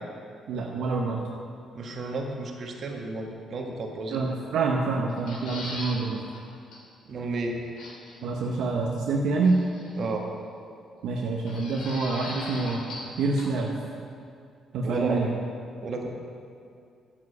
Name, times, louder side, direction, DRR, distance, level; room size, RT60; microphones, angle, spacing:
voice 1, 0.5-1.2 4.1-6.2 8.2-9.6 11.0-12.8 13.2-13.7 14.7-15.3, right 3 dB, 80° right, -1 dB, 1.0 m, -26 dB
voice 2, 1.7-4.2 7.0-7.6 10.0-10.3 14.8-15.2 15.8-16.1, right 3 dB, 55° right, 1 dB, 1.7 m, -32 dB
sound 1, 5.1-6.0 6.3-6.4 6.7-6.8 7.8-8.2 9.4-10.1 11.5-13.1 13.4-13.5, left 2 dB, 80° left, 2.7 m, -39 dB
9.8 x 7.5 x 6.8 m, 2.4 s
cardioid pair, 90°, 0 cm